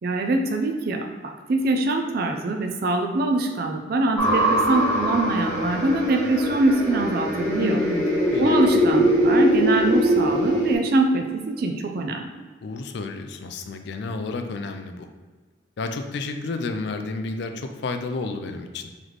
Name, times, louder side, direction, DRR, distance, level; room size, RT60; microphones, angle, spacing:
voice 1, 0.0-7.8 8.4-12.3, right 2 dB, 50° right, 4 dB, 0.4 m, -23 dB
sound 1, 4.2-10.7, equal, 15° left, 1.5 m, -22 dB
voice 2, 7.6-8.7 12.6-15.1 15.8-18.8, left 3 dB, 60° left, 6 dB, 0.4 m, -31 dB
3.9 x 3.1 x 3.2 m, 1.4 s
head